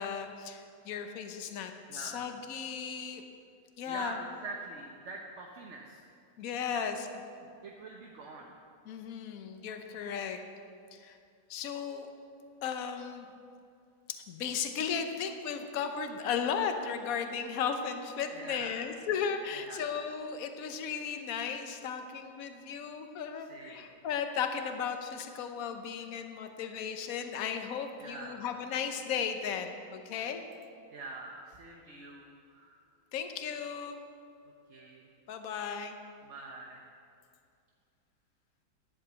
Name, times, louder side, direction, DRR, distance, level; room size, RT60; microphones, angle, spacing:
voice 1, 0.0-3.2 3.8-4.2 6.4-7.1 8.9-10.4 10.9-11.2 11.5-12.1 12.6-13.3 14.1-30.4 33.1-34.0 35.3-36.0, left 7 dB, 65° left, 6 dB, 1.2 m, -35 dB
voice 2, 1.9-2.2 3.9-6.0 6.7-6.8 7.6-8.5 18.3-18.9 19.6-20.0 23.4-24.0 28.0-28.4 30.9-32.8 34.7-35.1 36.2-36.8, right 3 dB, 50° right, 0 dB, 1.2 m, -45 dB
11.5 x 7.9 x 8.1 m, 2.4 s
omnidirectional pair, 1.8 m